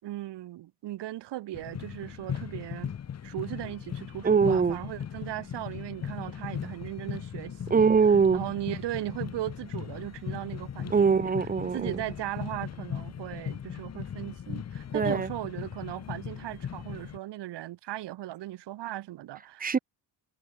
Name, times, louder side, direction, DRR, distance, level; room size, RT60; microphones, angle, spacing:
voice 1, 0.0-2.9 3.2-7.9 8.3-11.3 11.7-19.8, right 14 dB, 85° right, 3.8 m, -37 dB
sound 1, 1.5-17.2, left 8 dB, 40° left, 3.3 m, -38 dB
voice 2, 4.2-4.8 7.7-8.4 10.9-12.0 14.9-15.3 19.6-19.8, right 5 dB, 20° right, 1.3 m, -22 dB
cardioid pair, 175°, 41 cm